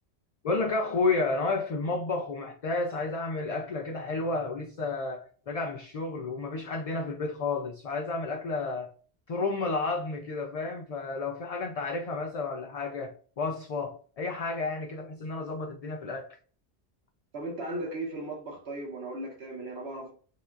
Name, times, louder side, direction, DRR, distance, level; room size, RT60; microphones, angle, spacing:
voice 1, 0.4-8.9 9.3-16.4, left 3 dB, 50° left, 0.4 m, -31 dB
voice 2, 17.3-20.1, right 2 dB, 75° right, 1.2 m, -36 dB
6.5 x 2.6 x 2.4 m
omnidirectional pair, 1.1 m